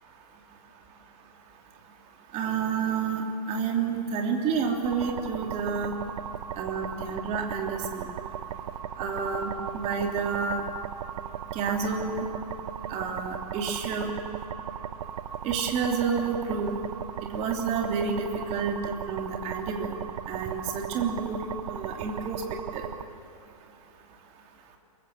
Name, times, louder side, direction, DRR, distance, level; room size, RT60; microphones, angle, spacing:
voice 1, 2.3-5.9 6.6-8.1 9.0-10.6 11.5-12.3 12.9-14.1 15.4-16.8 17.3-19.9 20.3-21.4 21.7-22.4 22.7-22.8, right 5 dB, 30° right, 2 dB, 3.1 m, -29 dB
sound 1, 4.9-23.0, right 9 dB, 60° right, 1.2 m, -37 dB
24.0 x 22.5 x 7.3 m, 2.5 s
figure-of-eight pair, 110°, 20 cm